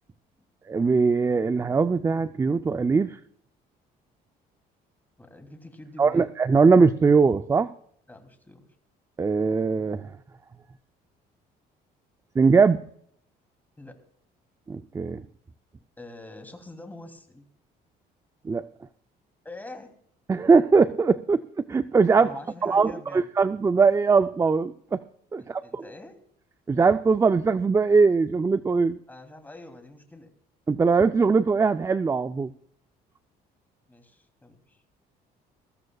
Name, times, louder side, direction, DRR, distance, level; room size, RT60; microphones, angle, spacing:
voice 1, 0.7-3.2 6.0-7.7 9.2-10.1 12.4-12.8 14.7-15.2 18.4-18.7 20.3-22.3 22.6-25.0 25.3-25.8 26.7-29.0 30.7-32.5, right 4 dB, 15° right, 10 dB, 0.5 m, -21 dB
voice 2, 5.2-6.3 8.1-8.7 13.8-14.0 16.0-17.4 19.4-19.9 22.2-23.3 25.4-26.2 29.1-30.3 33.9-34.8, left 2 dB, 10° left, 5 dB, 2.9 m, -45 dB
22.0 x 14.5 x 2.3 m, 0.65 s
cardioid pair, 110°, 17 cm